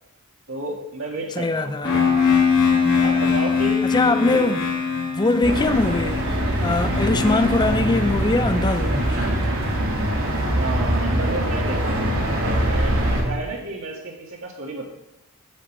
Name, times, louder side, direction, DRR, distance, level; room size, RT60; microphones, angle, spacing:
voice 1, 0.5-1.8 2.6-4.5 10.5-13.0 13.2-14.9, right 2 dB, 65° right, 2.4 m, -32 dB
voice 2, 1.4-2.1 3.9-4.7 5.1-6.3 6.6-9.1, left 2 dB, 20° left, 0.5 m, -22 dB
sound 1, 1.8-9.6, left 6 dB, 60° left, 3.3 m, -23 dB
sound 2, 5.4-13.2, right 1 dB, 85° right, 3.1 m, -23 dB
9.9 x 5.6 x 8.3 m
head